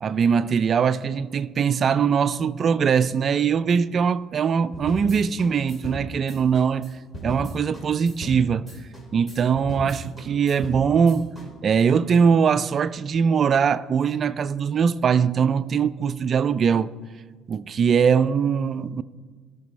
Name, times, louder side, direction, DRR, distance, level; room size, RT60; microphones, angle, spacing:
voice 1, 0.0-6.9 7.2-8.7 9.1-11.3 11.6-16.9 17.5-19.0, right 6 dB, 45° right, 0.3 m, -21 dB
sound 1, 4.7-11.5, equal, 15° left, 2.6 m, -37 dB
15.5 x 5.9 x 3.1 m
supercardioid pair, 90°, 0 cm